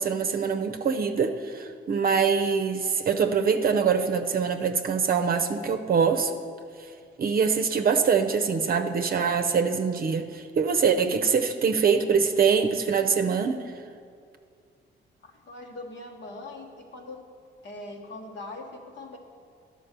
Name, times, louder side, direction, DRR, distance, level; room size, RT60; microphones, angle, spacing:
voice 1, 0.0-6.3 7.2-13.7, right 6 dB, 50° right, 6 dB, 0.6 m, -24 dB
voice 2, 15.2-17.2 17.6-19.2, left 2 dB, 65° left, 1 dB, 1.4 m, -41 dB
11.0 x 5.1 x 6.7 m, 2.2 s
cardioid pair, 90°, 20 cm